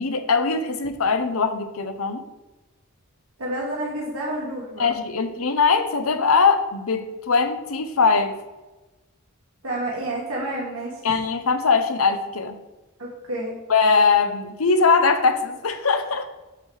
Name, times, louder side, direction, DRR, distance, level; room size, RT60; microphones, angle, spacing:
voice 1, 0.0-2.2 4.8-8.4 11.0-12.6 13.7-16.2, left 4 dB, 75° left, 8 dB, 0.8 m, -21 dB
voice 2, 3.4-4.9 9.6-10.9 13.0-13.6, right 1 dB, 70° right, -5 dB, 1.9 m, -29 dB
7.9 x 3.3 x 6.3 m, 1.1 s
head